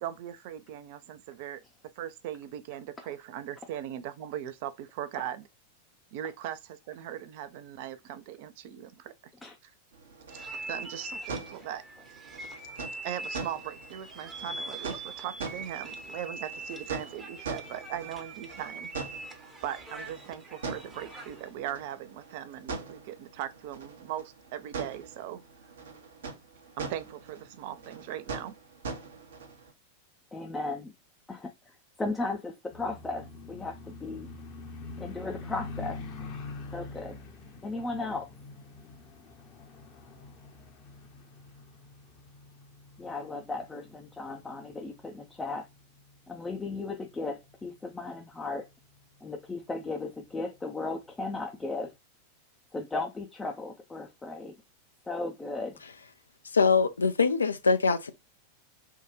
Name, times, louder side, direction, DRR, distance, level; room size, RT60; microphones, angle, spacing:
voice 1, 0.0-1.6 2.0-5.4 6.1-9.1 9.6-9.7 10.3-11.8 13.0-18.9 19.6-25.4 26.8-28.5, right 11 dB, 50° right, 0.5 m, -39 dB
sound 1, 9.9-29.7, right 4 dB, 65° right, 0.8 m, -43 dB
sound 2, 10.3-21.5, right 2 dB, 15° right, 0.8 m, -42 dB
voice 2, 30.3-30.9 31.3-34.3 35.0-36.0 36.7-37.2 37.6-38.3 43.0-45.7 46.3-48.7 49.2-51.9 52.7-54.6 55.1-55.8, left 3 dB, 10° left, 0.5 m, -36 dB
sound 3, 32.7-48.8 49.3-49.4 49.8-50.0 50.4-50.6, left 3 dB, 35° left, 0.8 m, -45 dB
voice 3, 56.5-58.1, left 4 dB, 75° left, 0.5 m, -23 dB
3.5 x 2.2 x 3.0 m
figure-of-eight pair, 90°, 0 cm